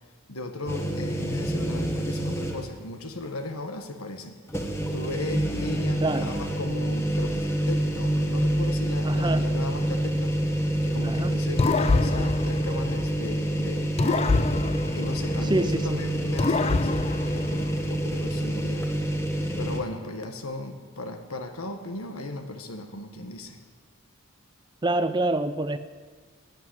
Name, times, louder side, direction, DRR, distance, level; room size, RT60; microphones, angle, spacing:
voice 1, 0.3-14.5 14.9-18.9 19.6-23.6, left 2 dB, 85° left, 1.5 m, -36 dB
sound 1, 0.7-2.8 3.2-3.3 4.5-19.8, right 1 dB, 10° left, 1.3 m, -27 dB
voice 2, 6.0-6.3 9.0-9.5 11.0-11.3 15.5-16.0 24.8-25.8, right 2 dB, 20° right, 0.5 m, -26 dB
sound 2, 11.6-13.5 14.0-15.9 16.4-18.1, left 3 dB, 30° left, 0.4 m, -26 dB
13.5 x 9.3 x 9.4 m
head